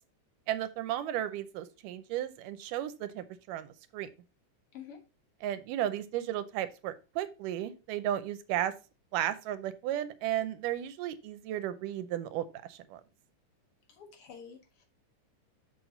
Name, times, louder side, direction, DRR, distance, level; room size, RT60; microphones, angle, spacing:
voice 1, 0.5-4.1 5.4-8.7 9.1-13.0, right 12 dB, 85° right, 12 dB, 2.3 m, -34 dB
voice 2, 13.9-14.8, left 7 dB, 55° left, 4 dB, 2.1 m, -48 dB
6.5 x 6.5 x 3.9 m, 0.31 s
omnidirectional pair, 3.8 m